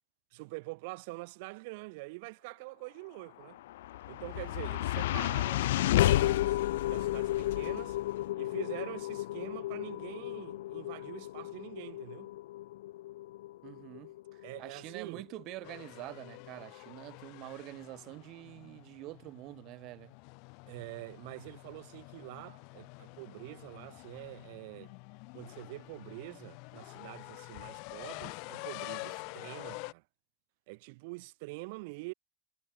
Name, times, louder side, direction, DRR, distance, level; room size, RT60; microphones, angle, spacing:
voice 1, 0.3-3.6 4.1-6.6 6.9-8.0 8.4-12.3 14.4-15.3 20.7-24.9 25.3-30.0 30.7-32.1, right 26 dB, 50° right, 1.8 m, -45 dB
sound 1, 3.4-15.8, left 15 dB, 85° left, 1.1 m, -32 dB
voice 2, 13.6-20.1, right 19 dB, 35° right, 2.0 m, -46 dB
sound 2, 15.6-29.9, left 36 dB, 45° left, 1.8 m, -47 dB
supercardioid pair, 175°, 0 cm